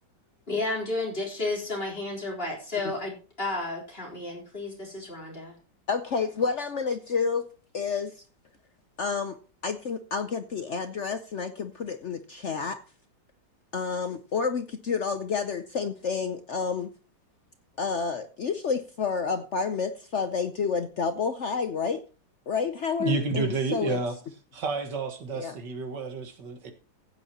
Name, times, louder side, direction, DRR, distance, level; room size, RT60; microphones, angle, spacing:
voice 1, 0.5-5.5, left 2 dB, 30° left, -2 dB, 3.9 m, -32 dB
voice 2, 5.9-7.5 7.7-8.2 9.0-9.4 9.6-12.8 13.7-16.9 17.8-22.0 22.5-24.0 25.3-25.6, left 5 dB, 60° left, 9 dB, 0.7 m, -29 dB
voice 3, 23.0-24.2 24.5-26.7, right 4 dB, 65° right, 6 dB, 2.2 m, -30 dB
15.5 x 8.9 x 2.9 m, 0.35 s
omnidirectional pair, 2.0 m